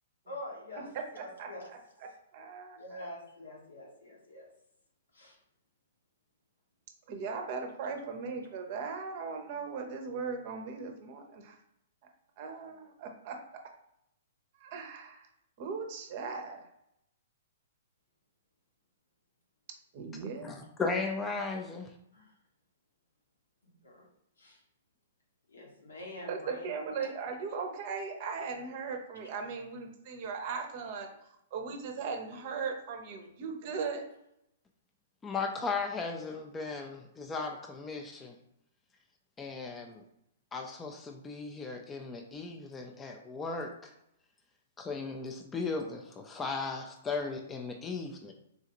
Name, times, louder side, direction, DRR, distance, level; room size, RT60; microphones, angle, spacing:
voice 1, 0.3-0.9 1.2-1.7 2.7-4.5 5.1-5.4 22.1-22.3 23.6-24.1 24.4-24.6 25.5-26.7 27.0-27.1, left 1 dB, 75° left, -1 dB, 1.1 m, -45 dB
voice 2, 1.2-3.1 7.1-11.6 12.4-13.4 14.6-15.3 15.6-16.7 19.9-20.5 26.3-31.1 31.5-34.0, right 5 dB, 45° right, 4 dB, 0.7 m, -38 dB
voice 3, 20.4-21.9 35.2-38.4 39.4-40.0 40.5-43.9 44.8-48.3, left 4 dB, 15° left, 2 dB, 0.4 m, -36 dB
3.8 x 2.4 x 2.9 m, 0.77 s
figure-of-eight pair, 115°, 0 cm